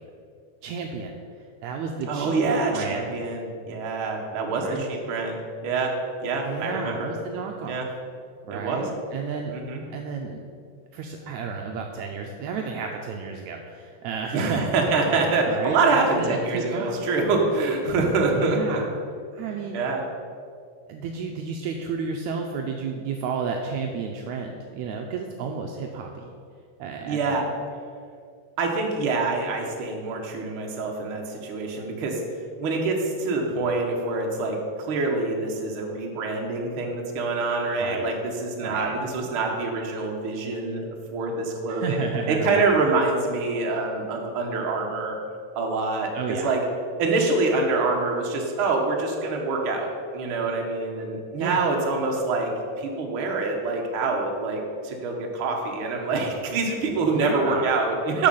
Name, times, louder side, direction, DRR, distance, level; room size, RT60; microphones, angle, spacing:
voice 1, 0.6-1.2 1.6-2.4 2.7-3.1 4.5-4.8 6.4-7.8 8.4-9.5 9.9-10.4 10.9-14.8 15.4-17.0 18.3-18.9 19.3-19.8 20.9-26.3 26.8-27.4 37.8-38.0 38.6-38.9 41.7-42.7 46.1-46.5 51.4-51.6 57.1-57.7, right 5 dB, 80° right, 2 dB, 1.8 m, -32 dB
voice 2, 2.1-5.9 6.2-7.1 7.7-7.9 8.5-8.8 9.5-9.8 14.3-18.8 19.7-20.0 27.0-27.4 28.6-32.2 32.6-34.6 34.9-45.2 45.5-46.6 47.0-52.5 52.8-58.3, right 3 dB, 55° right, 0 dB, 1.6 m, -25 dB
12.5 x 4.9 x 5.5 m, 2.3 s
omnidirectional pair, 3.7 m